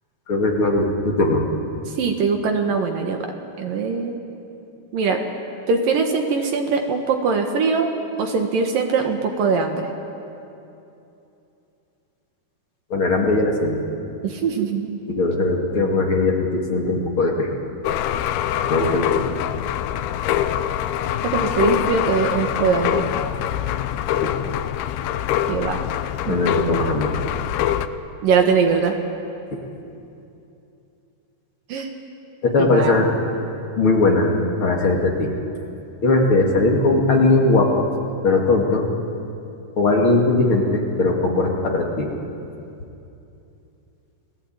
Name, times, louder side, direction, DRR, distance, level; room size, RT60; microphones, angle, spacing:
voice 1, 0.3-1.4 12.9-13.8 15.1-17.6 18.7-19.2 24.2-24.3 26.3-27.1 29.5-29.6 32.4-33.1 33.7-34.3 34.6-35.3 36.0-37.9 38.2-38.9 39.8-42.2, left 2 dB, 40° left, 0 dB, 2.4 m, -19 dB
voice 2, 2.0-3.2 3.6-4.2 4.9-5.2 5.7-7.9 8.2-9.9 14.2-15.0 21.2-23.0 25.5-25.8 26.3-26.4 28.2-29.0 31.7-31.9 32.6-32.9, right 5 dB, 60° right, 4 dB, 3.0 m, -21 dB
sound 1, 17.8-27.9, left 11 dB, 80° left, 2.5 m, -24 dB
29.5 x 18.5 x 9.0 m, 2.8 s
omnidirectional pair, 4.9 m